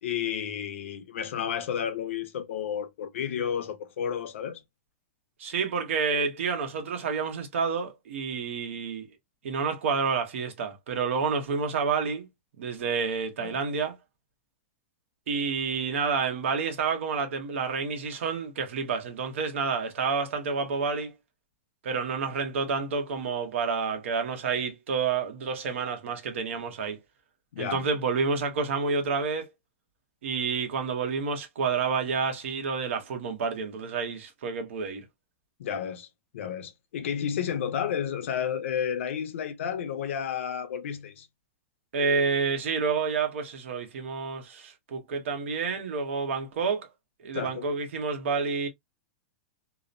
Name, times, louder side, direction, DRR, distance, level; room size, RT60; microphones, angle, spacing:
voice 1, 0.0-4.6 13.4-13.6 27.5-27.8 35.6-36.1 36.3-41.3 47.3-47.7, left 8 dB, 65° left, 0.6 m, -31 dB
voice 2, 5.4-9.1 9.4-12.3 12.6-14.0 15.3-21.1 21.8-27.0 27.6-29.5 30.2-35.0 41.9-46.9 47.2-48.7, right 5 dB, 65° right, 0.9 m, -29 dB
2.9 x 2.0 x 2.4 m
supercardioid pair, 175°, 7 cm